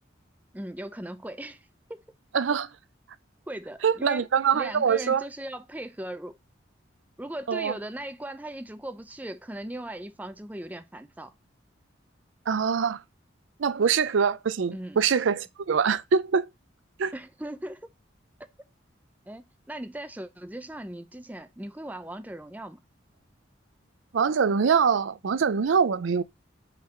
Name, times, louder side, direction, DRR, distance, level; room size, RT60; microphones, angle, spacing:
voice 1, 0.5-2.0 3.5-6.4 7.2-11.3 14.7-15.0 17.1-17.9 19.3-22.8, right 1 dB, 10° right, 0.5 m, -38 dB
voice 2, 2.3-2.7 3.8-5.2 7.5-7.7 12.5-13.0 13.6-16.5 17.0-17.1 24.1-26.2, right 6 dB, 80° right, 0.5 m, -24 dB
5.8 x 3.8 x 4.3 m
head